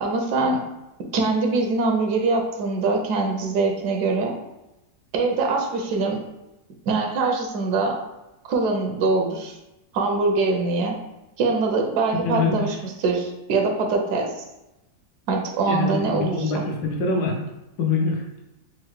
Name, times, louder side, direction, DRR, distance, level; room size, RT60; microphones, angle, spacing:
voice 1, 0.0-0.6 1.1-4.3 5.1-6.2 6.9-8.0 8.4-9.6 9.9-11.0 11.4-14.3 15.3-16.6, right 3 dB, 85° right, 2 dB, 1.2 m, -23 dB
voice 2, 12.2-12.5 15.7-17.4 17.8-18.2, left 3 dB, 80° left, 0 dB, 1.3 m, -24 dB
4.4 x 2.1 x 3.1 m, 0.96 s
omnidirectional pair, 1.7 m